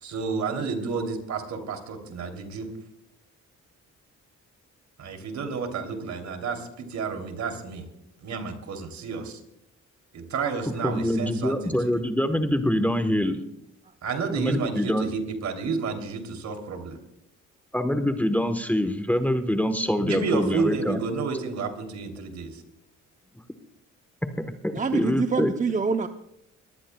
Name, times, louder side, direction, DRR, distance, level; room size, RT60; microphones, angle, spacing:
voice 1, 0.0-2.7 5.0-7.9 8.2-9.4 10.1-11.7 14.0-17.0 20.0-22.6, right 5 dB, 65° right, 5 dB, 3.1 m, -30 dB
voice 2, 10.8-13.4 14.4-15.1 17.7-21.0 24.9-25.5, left 1 dB, 5° left, 7 dB, 1.1 m, -24 dB
voice 3, 24.7-26.1, right 5 dB, 25° right, 7 dB, 0.7 m, -25 dB
22.5 x 18.5 x 2.3 m, 0.80 s
cardioid pair, 90°, 30 cm